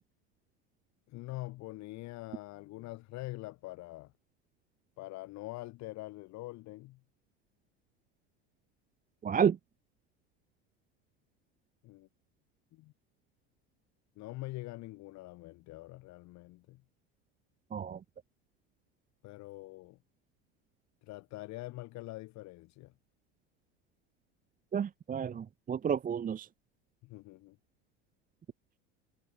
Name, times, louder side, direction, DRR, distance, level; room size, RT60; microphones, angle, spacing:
voice 1, 1.1-4.1 5.0-7.0 11.8-12.1 12.7-12.9 14.2-16.8 19.2-20.0 21.0-22.9 27.0-27.6, left 19 dB, 55° left, 2.3 m, -44 dB
voice 2, 9.2-9.6 17.7-18.0 24.7-26.5, right 7 dB, 25° right, 1.0 m, -31 dB
supercardioid pair, 95°, 33 cm